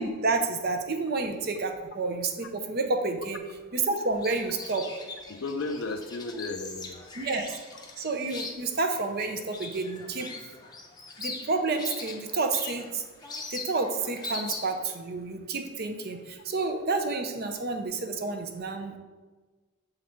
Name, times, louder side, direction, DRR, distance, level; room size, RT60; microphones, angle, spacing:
voice 1, 0.0-3.4 3.7-4.9 7.2-7.6 8.0-10.3 11.2-13.0 13.5-19.0, right 3 dB, 45° right, 6 dB, 0.6 m, -30 dB
sound 1, 4.0-14.9, left 3 dB, 20° left, 0.6 m, -41 dB
voice 2, 5.3-7.2, left 3 dB, 65° left, 9 dB, 0.5 m, -34 dB
7.2 x 3.9 x 4.4 m, 1.3 s
head